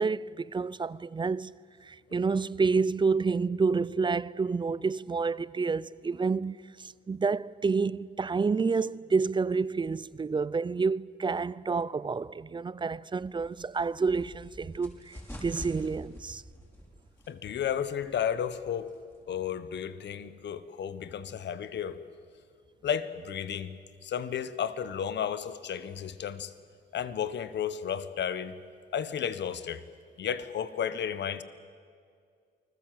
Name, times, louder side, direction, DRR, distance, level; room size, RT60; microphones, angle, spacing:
voice 1, 0.0-1.5 1.8-16.4, right 4 dB, 25° right, 0.5 m, -29 dB
sound 1, 13.2-19.3, equal, 10° left, 5.6 m, -47 dB
voice 2, 17.3-18.9 19.3-22.0 22.8-23.7 24.0-26.5 26.9-28.5 28.9-29.8 30.2-31.4, left 8 dB, 60° left, 1.4 m, -33 dB
29.0 x 20.5 x 7.8 m
cardioid pair, 90°, 20 cm